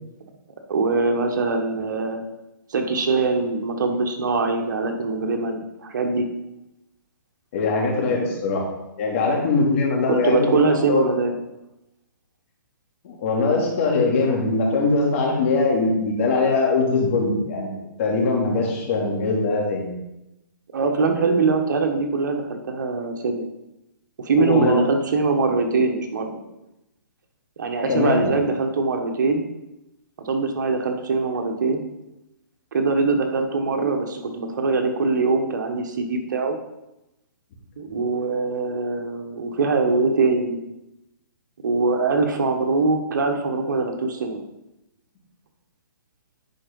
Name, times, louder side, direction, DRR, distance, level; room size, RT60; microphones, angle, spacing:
voice 1, 0.7-2.2 2.7-6.2 10.1-11.3 20.7-23.5 24.2-26.4 27.6-29.4 30.2-31.8 32.7-36.6 37.8-40.6 41.6-44.4, right 4 dB, 60° right, 5 dB, 1.3 m, -22 dB
voice 2, 7.5-8.6 9.0-11.1 13.0-19.9 24.5-24.8 27.9-28.3, left 3 dB, 35° left, -1 dB, 2.5 m, -21 dB
10.0 x 4.6 x 5.3 m, 0.93 s
hypercardioid pair, 155°, 11 cm